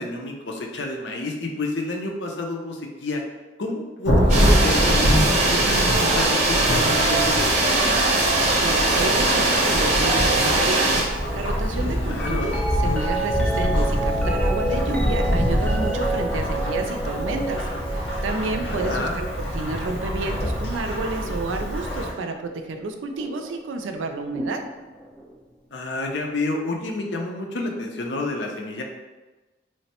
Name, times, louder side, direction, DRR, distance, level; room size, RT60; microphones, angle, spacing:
voice 1, 0.0-3.2 3.6-7.9 12.1-12.5 18.7-19.2 25.7-28.8, left 2 dB, 70° left, 1 dB, 0.5 m, -29 dB
Thunderstorm / Rain, 4.1-22.1, equal, 85° left, 1.3 m, -25 dB
sound 1, 4.3-11.0, right 2 dB, 35° right, 0.6 m, -21 dB
voice 2, 8.6-12.5 12.8-17.7 17.9-24.6, right 3 dB, 85° right, 5 dB, 0.4 m, -30 dB
sound 2, 12.1-22.3 23.2-23.6 24.3-25.3 27.1-27.2, right 2 dB, 5° left, 0.4 m, -31 dB
3.2 x 2.1 x 4.2 m, 1.2 s
head